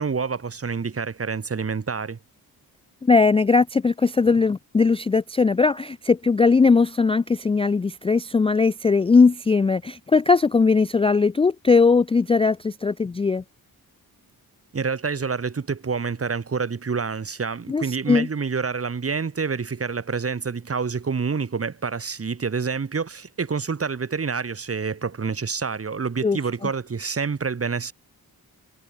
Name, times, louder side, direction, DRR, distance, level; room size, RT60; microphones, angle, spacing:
voice 1, 0.0-2.2 14.7-27.9, right 5 dB, 40° right, 1.7 m, -27 dB
voice 2, 3.0-13.4 17.7-18.3 26.2-26.4, left 4 dB, 15° left, 0.3 m, -19 dB
cardioid pair, 90°, 37 cm